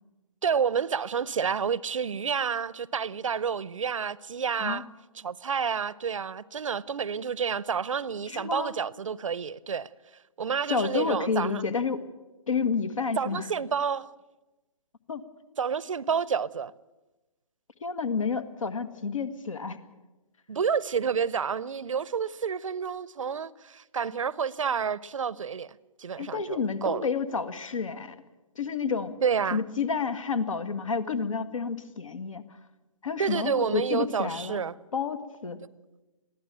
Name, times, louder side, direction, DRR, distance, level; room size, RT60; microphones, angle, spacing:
voice 1, 0.4-4.8 5.2-9.9 10.4-11.6 13.2-14.1 15.6-16.7 20.5-25.7 26.0-27.1 29.2-29.6 33.2-34.8, right 6 dB, 65° right, 0.7 m, -29 dB
voice 2, 8.3-8.7 10.7-12.0 12.5-13.5 15.1-15.2 17.8-19.8 26.2-28.2 28.6-29.2 29.5-32.4 33.0-34.6 34.9-35.6, left 5 dB, 65° left, 1.7 m, -30 dB
22.5 x 15.0 x 8.9 m
figure-of-eight pair, 135°, 18 cm